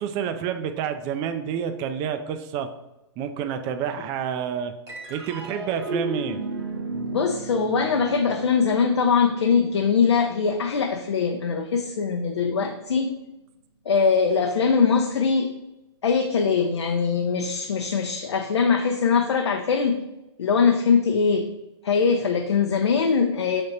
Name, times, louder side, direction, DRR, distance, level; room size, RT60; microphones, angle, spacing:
voice 1, 0.0-2.7 3.2-4.7 5.1-6.4, right 8 dB, 30° right, 8 dB, 0.3 m, -29 dB
sound 1, 4.9-11.5, right 3 dB, 75° right, 1.4 m, -35 dB
voice 2, 7.1-13.1 13.9-15.5 16.0-20.0 20.4-21.5 21.8-23.6, left 5 dB, 75° left, 3 dB, 0.5 m, -22 dB
5.3 x 3.4 x 2.7 m, 0.95 s
hypercardioid pair, 125°, 14 cm